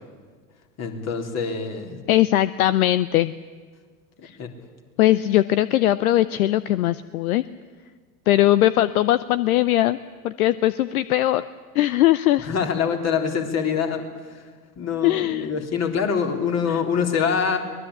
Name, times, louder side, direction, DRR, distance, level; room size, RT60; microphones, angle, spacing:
voice 1, 0.8-2.0 4.2-4.5 12.4-14.4 14.8-17.6, left 6 dB, 35° left, 3 dB, 3.7 m, -25 dB
voice 2, 2.1-3.3 4.2-4.4 5.0-7.4 8.3-10.0 10.2-11.4 11.7-12.5 15.0-15.5 16.7-16.8, left 14 dB, 65° left, 16 dB, 0.8 m, -20 dB
23.5 x 20.0 x 8.6 m, 1.5 s
hypercardioid pair, 85°, 46 cm